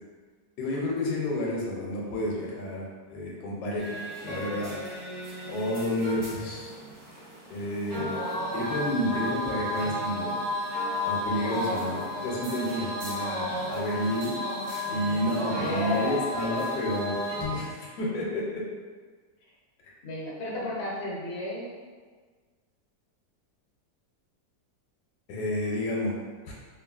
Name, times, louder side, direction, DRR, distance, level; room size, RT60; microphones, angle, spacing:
voice 1, 0.6-4.8 5.5-6.7 7.5-8.3 8.5-10.4 11.0-14.3 14.9-18.6 25.3-26.1 26.5-26.6, left 1 dB, 75° left, -3 dB, 1.1 m, -30 dB
sound 1, 3.8-17.4, left 1 dB, 50° right, 1.0 m, -33 dB
voice 2, 14.9-16.2 20.0-21.7, left 1 dB, 60° left, -5 dB, 0.6 m, -34 dB
3.1 x 2.4 x 2.3 m, 1.5 s
omnidirectional pair, 1.8 m